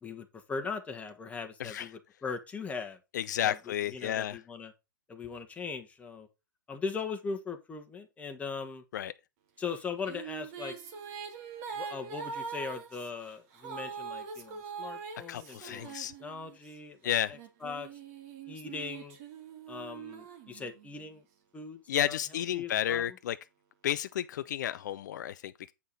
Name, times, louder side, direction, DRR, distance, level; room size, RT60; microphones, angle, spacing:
voice 1, 0.0-3.0 3.4-3.6 3.9-4.7 5.1-6.3 6.7-8.8 9.6-10.7 11.8-17.9 18.5-19.2 19.7-21.2 21.5-23.0, left 5 dB, 10° left, 1.4 m, -39 dB
voice 2, 3.1-4.4 8.9-9.1 15.3-16.1 17.0-17.4 21.9-23.4 23.8-25.7, left 11 dB, 60° left, 0.4 m, -32 dB
sound 1, 9.7-16.7 17.3-21.1, right 6 dB, 45° right, 2.0 m, -43 dB
8.5 x 5.5 x 4.0 m
hypercardioid pair, 120°, 11 cm